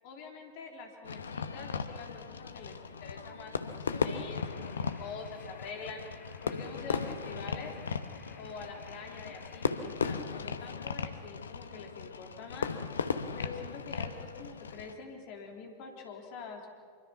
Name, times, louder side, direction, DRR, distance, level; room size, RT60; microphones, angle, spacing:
voice 1, 0.0-6.0 6.4-7.7 8.4-12.7 13.3-16.7, left 4 dB, 45° left, 2 dB, 3.6 m, -46 dB
Fireworks, 1.0-15.0, left 5 dB, 70° left, 1.1 m, -37 dB
sound 1, 4.3-9.9, left 5 dB, 20° left, 2.6 m, -59 dB
25.5 x 24.0 x 6.0 m, 2.1 s
figure-of-eight pair, 90°, 0 cm